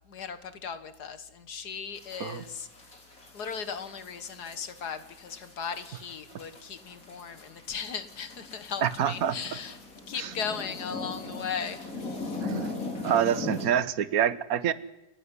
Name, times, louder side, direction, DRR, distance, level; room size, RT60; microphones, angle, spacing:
voice 1, 0.1-2.7 3.3-9.8 10.1-12.4, left 6 dB, 80° left, 12 dB, 2.1 m, -37 dB
sound 1, 2.0-13.7, left 2 dB, 55° left, 4.3 m, -40 dB
voice 2, 8.8-9.4 10.2-10.3 12.4-12.7 13.0-14.7, right 9 dB, 65° right, 16 dB, 1.4 m, -26 dB
29.0 x 11.5 x 9.8 m, 0.94 s
omnidirectional pair, 1.7 m